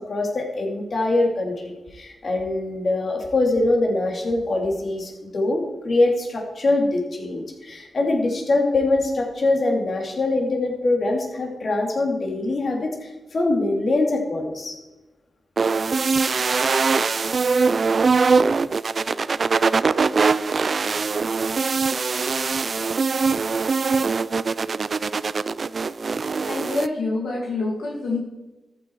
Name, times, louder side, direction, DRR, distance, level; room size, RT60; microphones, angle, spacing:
voice 1, 0.0-14.8, left 2 dB, 55° left, 1 dB, 2.9 m, -23 dB
sound 1, 15.6-26.9, right 4 dB, 50° right, 0.4 m, -22 dB
voice 2, 26.5-28.2, left 3 dB, 80° left, -2 dB, 2.1 m, -26 dB
13.5 x 9.0 x 4.8 m, 1.1 s
cardioid pair, 75°, 0 cm